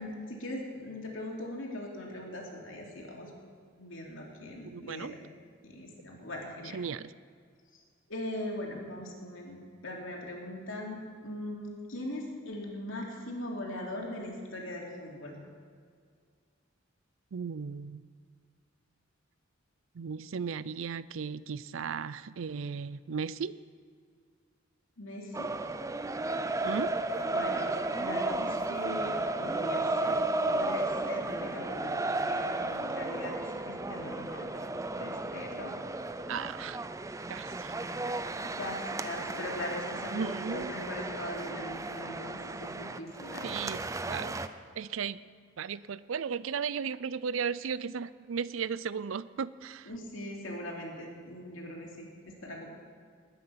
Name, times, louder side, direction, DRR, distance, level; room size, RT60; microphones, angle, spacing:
voice 1, 0.0-3.3 3.8-5.1 5.6-6.8 7.7-7.8 8.1-15.4 25.0-25.5 27.3-29.1 29.4-30.2 30.5-34.7 35.0-35.7 38.4-43.6 49.9-52.7, left 1 dB, 75° left, -1 dB, 2.9 m, -40 dB
voice 2, 4.6-5.1 6.7-7.1 17.3-18.0 19.9-23.5 26.6-26.9 36.3-36.8 37.3-37.8 38.3-38.6 40.1-40.7 43.4-43.8 44.1-44.4 44.8-45.2 45.6-49.9, right 6 dB, 75° right, 17 dB, 0.5 m, -35 dB
sound 1, 25.3-44.5, right 2 dB, 15° right, 0.5 m, -34 dB
20.0 x 9.4 x 5.8 m, 2.1 s
head